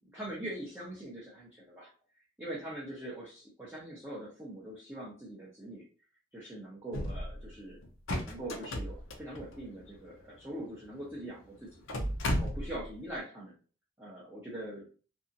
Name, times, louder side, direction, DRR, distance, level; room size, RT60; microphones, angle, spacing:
voice 1, 0.1-1.9 2.4-5.8 6.3-7.8 8.2-11.7 12.3-13.5 14.0-14.8, right 1 dB, 10° right, -7 dB, 0.7 m, -42 dB
sound 1, 6.9-7.5 7.8-10.0 10.8-10.9 11.1-11.2 11.7-12.9, left 1 dB, 80° left, 0.6 m, -34 dB
2.7 x 2.4 x 2.6 m, 0.38 s
head